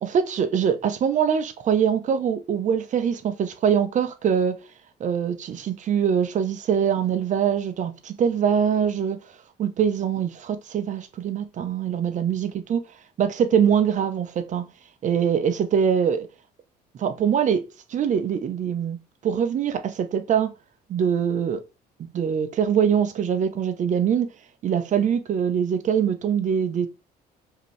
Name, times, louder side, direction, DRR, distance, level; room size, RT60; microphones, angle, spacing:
voice 1, 0.0-4.6 5.0-9.2 9.6-12.8 13.2-14.7 15.0-16.3 17.0-17.6 17.9-19.0 19.2-20.5 20.9-21.6 22.1-24.3 24.6-26.9, right 8 dB, 50° right, 0.7 m, -23 dB
5.0 x 2.9 x 3.3 m
cardioid pair, 110°, 17 cm